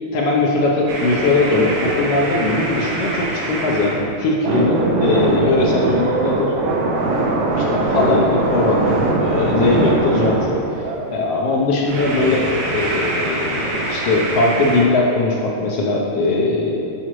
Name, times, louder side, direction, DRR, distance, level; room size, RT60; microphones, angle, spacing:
voice 1, 0.1-6.5 7.6-9.0 9.2-16.8, left 2 dB, 75° left, -2 dB, 1.3 m, -20 dB
sound 1, 0.9-4.0 4.4-11.1 11.8-14.8, right 2 dB, 85° right, 2.3 m, -22 dB
11.0 x 4.9 x 3.0 m, 2.7 s
omnidirectional pair, 3.3 m